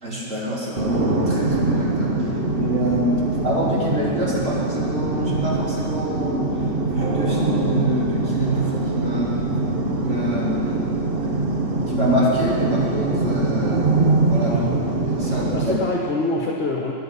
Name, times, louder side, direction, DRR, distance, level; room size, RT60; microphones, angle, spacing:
voice 1, 0.0-2.1 2.5-3.2 3.4-6.5 6.9-9.4 10.0-11.0 11.9-13.8 14.3-14.5 15.1-15.7, right 1 dB, 65° right, -6 dB, 3.9 m, -26 dB
sound 1, 0.8-15.8, right 2 dB, 45° right, 1.3 m, -23 dB
voice 2, 14.4-14.8 15.2-16.9, left 2 dB, 50° left, -1 dB, 1.7 m, -26 dB
23.0 x 9.3 x 5.6 m, 2.5 s
omnidirectional pair, 1.4 m